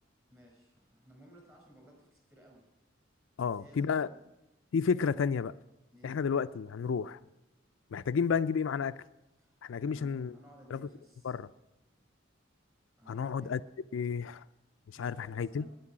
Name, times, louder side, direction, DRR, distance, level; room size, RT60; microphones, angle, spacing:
voice 1, 0.3-2.7 3.4-4.2 5.9-6.2 9.4-11.4 13.0-13.5 14.9-15.7, equal, 15° right, 4.6 m, -57 dB
voice 2, 3.4-4.1 4.7-5.5 6.0-7.2 7.9-9.0 9.6-10.4 10.7-10.9 11.2-11.5 13.1-13.6 13.9-14.4 15.0-15.7, left 6 dB, 75° left, 0.4 m, -31 dB
10.5 x 9.8 x 8.7 m
head